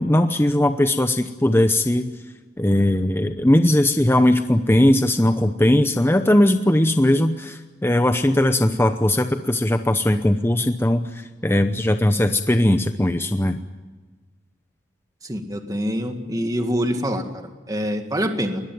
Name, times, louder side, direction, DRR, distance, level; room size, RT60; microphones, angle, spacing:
voice 1, 0.0-2.1 2.6-13.6, left 1 dB, 15° left, 8 dB, 0.8 m, -19 dB
voice 2, 15.2-18.6, equal, 20° right, 5 dB, 1.9 m, -25 dB
21.5 x 21.0 x 9.4 m, 1.3 s
head